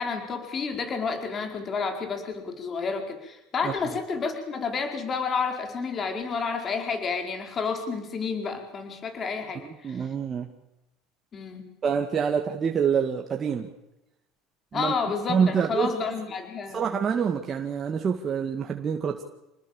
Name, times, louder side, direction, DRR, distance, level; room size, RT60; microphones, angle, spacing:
voice 1, 0.0-10.0 11.3-11.7 14.7-16.8, left 5 dB, 30° left, 5 dB, 4.7 m, -30 dB
voice 2, 9.6-10.5 11.8-13.7 14.7-14.9 15.3-15.9 16.7-19.2, right 7 dB, 30° right, 2 dB, 2.2 m, -26 dB
28.0 x 19.5 x 7.4 m, 0.91 s
supercardioid pair, 120°, 0 cm